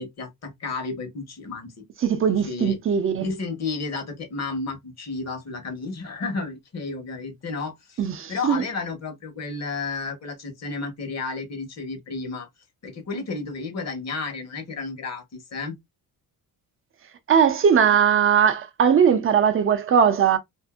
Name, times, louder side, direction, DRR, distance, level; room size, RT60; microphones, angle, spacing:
voice 1, 0.0-1.7 2.5-2.8 3.2-8.0 8.3-12.5 12.8-15.7, left 3 dB, 45° left, 1.2 m, -32 dB
voice 2, 2.0-3.3 8.0-8.6 17.3-20.4, right 7 dB, 35° right, 0.6 m, -19 dB
2.6 x 2.6 x 2.4 m
cardioid pair, 125°, 36 cm